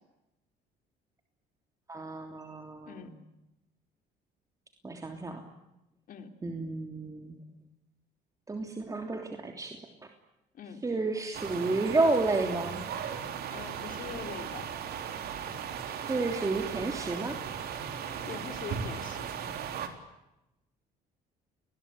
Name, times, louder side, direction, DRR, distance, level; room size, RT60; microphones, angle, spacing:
voice 1, 1.9-3.1 4.8-5.4 6.4-7.4 8.5-9.8 10.8-12.8 15.9-17.4, right 3 dB, 20° right, 4 dB, 3.1 m, -31 dB
sound 1, 11.3-19.9, right 8 dB, 70° right, 3.7 m, -37 dB
voice 2, 13.5-14.7 18.2-19.3, left 7 dB, 55° left, 7 dB, 3.8 m, -43 dB
29.5 x 21.5 x 8.8 m, 0.92 s
cardioid pair, 110°, 17 cm